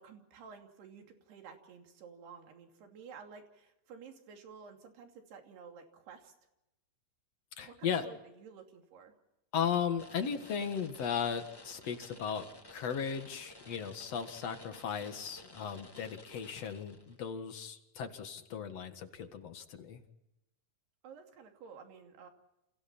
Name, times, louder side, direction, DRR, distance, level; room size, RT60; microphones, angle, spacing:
voice 1, 0.0-6.3 7.6-9.1 21.0-22.3, right 6 dB, 90° right, 4 dB, 4.8 m, -52 dB
voice 2, 7.6-8.1 9.5-20.0, left 7 dB, 50° left, 7 dB, 2.3 m, -36 dB
sound 1, 10.0-17.2, left 1 dB, 20° left, 0.7 m, -54 dB
29.5 x 28.5 x 4.4 m, 0.91 s
omnidirectional pair, 4.5 m